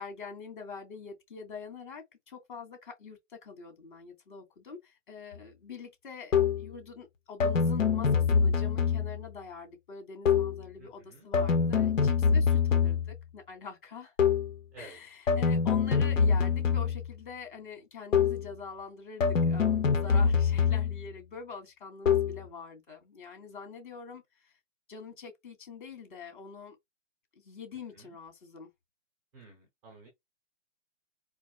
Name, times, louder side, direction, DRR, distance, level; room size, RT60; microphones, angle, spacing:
voice 1, 0.0-14.1 14.8-24.5 24.9-26.8 27.4-28.7, left 5 dB, 40° left, 2.8 m, -45 dB
sound 1, 6.3-6.7 7.4-9.3 10.2-10.7 11.3-13.2 14.2-14.6 15.3-17.2 18.1-18.5 19.2-21.1 22.1-22.5, left 6 dB, 85° left, 1.2 m, -25 dB
voice 2, 10.8-11.3 14.7-15.0 27.9-28.2 29.3-30.1, right 3 dB, 5° right, 0.6 m, -52 dB
4.8 x 4.5 x 2.3 m
hypercardioid pair, 170°, 38 cm